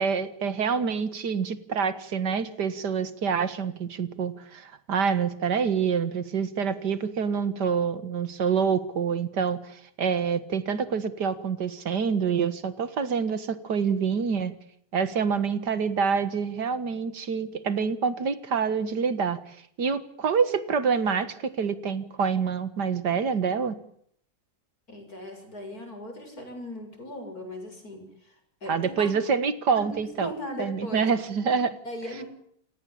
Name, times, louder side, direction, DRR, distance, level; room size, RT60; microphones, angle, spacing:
voice 1, 0.0-14.5 14.9-19.4 19.8-23.8 28.7-30.3 30.6-31.8, right 6 dB, 75° right, 13 dB, 2.2 m, -26 dB
voice 2, 24.9-28.4 28.6-29.1 30.0-31.1 31.4-31.6 31.8-32.2, left 1 dB, 60° left, 4 dB, 7.8 m, -38 dB
29.5 x 17.5 x 8.7 m, 0.69 s
omnidirectional pair, 1.8 m